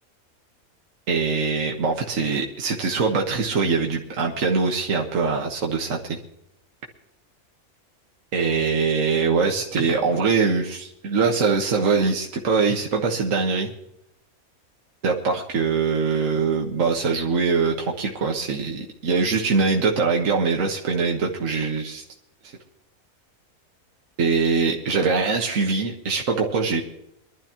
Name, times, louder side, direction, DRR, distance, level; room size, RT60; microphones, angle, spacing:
voice 1, 1.1-6.2 8.3-13.7 15.0-22.0 24.2-26.8, right 4 dB, 60° right, 1 dB, 1.8 m, -23 dB
23.5 x 12.5 x 3.0 m, 0.79 s
omnidirectional pair, 1.6 m